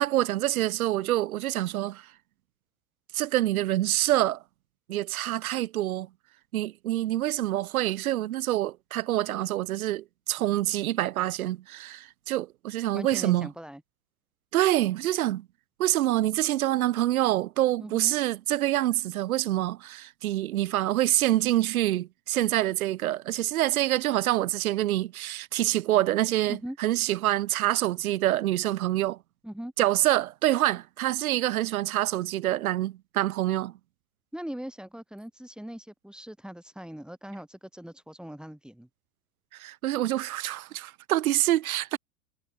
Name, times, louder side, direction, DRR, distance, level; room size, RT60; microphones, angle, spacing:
voice 1, 0.0-2.1 3.1-4.4 4.9-6.1 6.5-13.5 14.5-15.5 15.8-29.2 29.8-33.7 39.5-42.0, right 14 dB, 75° right, 1.6 m, -26 dB
voice 2, 12.9-13.8 17.8-18.1 26.5-26.8 29.4-29.7 34.3-38.9, equal, ahead, 2.3 m, -40 dB
hypercardioid pair, 90°, 43 cm